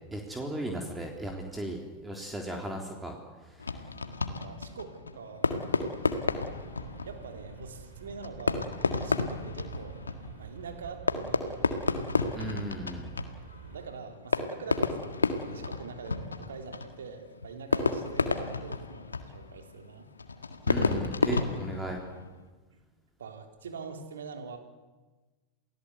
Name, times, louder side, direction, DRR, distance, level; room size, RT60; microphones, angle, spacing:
voice 1, 0.1-3.9 12.3-13.1 20.7-22.0, right 1 dB, 10° right, 2 dB, 3.6 m, -37 dB
Fireworks, 3.6-22.4, left 4 dB, 85° left, 1.8 m, -32 dB
voice 2, 4.1-6.0 7.0-8.7 9.0-10.0 10.4-11.9 13.7-20.1 22.7-22.8 23.2-24.6, right 5 dB, 75° right, 5 dB, 3.3 m, -44 dB
sound 1, 6.3-14.0, right 9 dB, 55° right, 2.9 m, -48 dB
28.5 x 18.0 x 8.2 m, 1.2 s
figure-of-eight pair, 90°, 0 cm